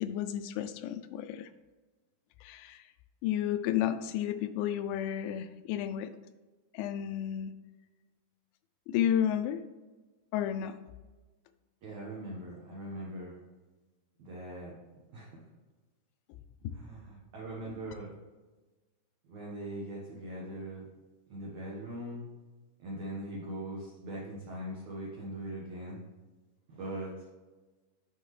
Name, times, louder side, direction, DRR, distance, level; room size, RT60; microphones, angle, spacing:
voice 1, 0.0-1.5 2.4-2.8 3.2-6.2 6.7-7.5 8.9-9.6 10.3-10.8 16.6-16.7 17.7-17.8, left 10 dB, 85° left, 10 dB, 2.9 m, -32 dB
voice 2, 11.8-13.3 14.2-14.7 15.1-15.3 16.7-18.1 19.3-20.8 21.3-22.3 22.8-26.0 26.7-27.1, right 1 dB, 90° right, -4 dB, 1.6 m, -41 dB
8.8 x 5.7 x 3.2 m, 1.2 s
omnidirectional pair, 5.4 m